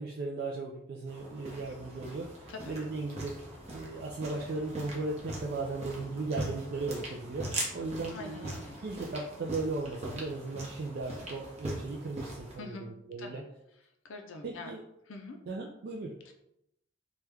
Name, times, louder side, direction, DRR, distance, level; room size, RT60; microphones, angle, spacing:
voice 1, 0.0-8.5 8.8-13.4 14.4-14.8 15.5-16.1, right 3 dB, 50° right, -1 dB, 0.3 m, -37 dB
sound 1, 1.1-12.6, right 1 dB, 30° right, 0.7 m, -41 dB
voice 2, 8.1-8.8 12.6-12.9 13.2-13.4 14.0-14.7 15.1-15.4 16.3-16.4, left 3 dB, 75° left, 4 dB, 0.5 m, -44 dB
3.1 x 2.3 x 3.3 m, 0.81 s
head